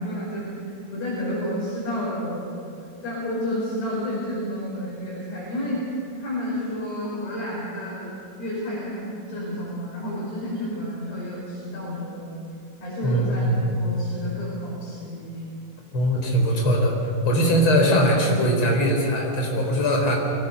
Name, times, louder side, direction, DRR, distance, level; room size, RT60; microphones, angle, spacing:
voice 1, 0.0-2.5 3.0-5.8 6.2-8.1 8.4-12.3 12.8-15.4, left 1 dB, 50° left, -7 dB, 6.9 m, -30 dB
voice 2, 13.0-13.6 15.9-16.9 17.2-20.1, equal, 30° left, 0 dB, 4.3 m, -21 dB
23.5 x 18.0 x 6.8 m, 2.5 s
omnidirectional pair, 5.2 m